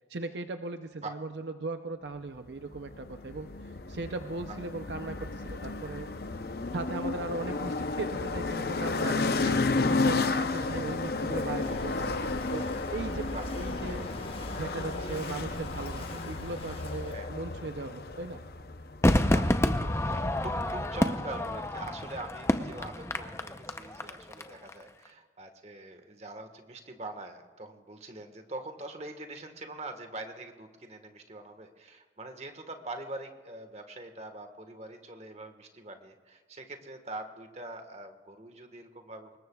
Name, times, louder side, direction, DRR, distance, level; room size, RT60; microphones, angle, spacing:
voice 1, 0.1-6.1 6.7-9.4 9.8-12.7 12.9-14.1 14.6-18.4, right 3 dB, 70° right, 7 dB, 0.6 m, -38 dB
sound 1, 2.7-20.2, left 3 dB, 55° left, 0.7 m, -32 dB
voice 2, 9.1-9.6 10.0-10.7 13.3-13.5 17.1-17.3 19.3-19.6 20.0-39.4, right 2 dB, 35° right, 6 dB, 1.5 m, -43 dB
Walk footsteps / Wind / Waves surf, 10.6-17.3, left 1 dB, 30° left, 1.4 m, -42 dB
Crowd / Fireworks, 19.0-24.4 24.7-24.8, left 1 dB, 15° left, 0.7 m, -28 dB
24.5 x 20.5 x 2.4 m, 1.5 s
head